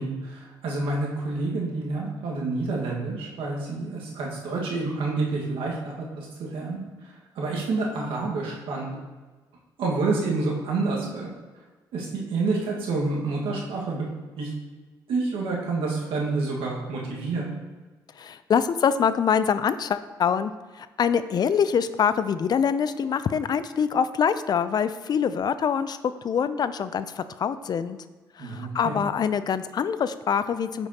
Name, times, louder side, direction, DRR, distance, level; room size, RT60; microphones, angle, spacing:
voice 1, 0.0-6.8 7.3-8.9 9.8-11.3 11.9-14.0 14.4-14.5 15.1-17.5 28.4-29.0, right 3 dB, 75° right, -3 dB, 1.6 m, -28 dB
voice 2, 18.2-20.5 20.8-26.0 26.2-28.0 28.4-30.9, left 7 dB, 50° left, 13 dB, 0.4 m, -24 dB
8.7 x 5.3 x 2.9 m, 1.3 s
supercardioid pair, 60°, 9 cm